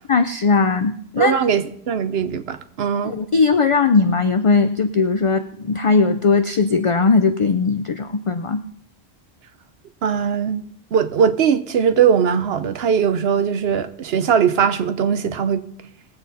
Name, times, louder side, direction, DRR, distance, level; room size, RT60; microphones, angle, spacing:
voice 1, 0.1-1.3 3.0-8.6, left 4 dB, 45° left, 0.4 m, -18 dB
voice 2, 1.2-3.1 10.0-10.6 10.9-15.6, right 7 dB, 70° right, 1.0 m, -20 dB
20.0 x 7.8 x 4.1 m
omnidirectional pair, 1.1 m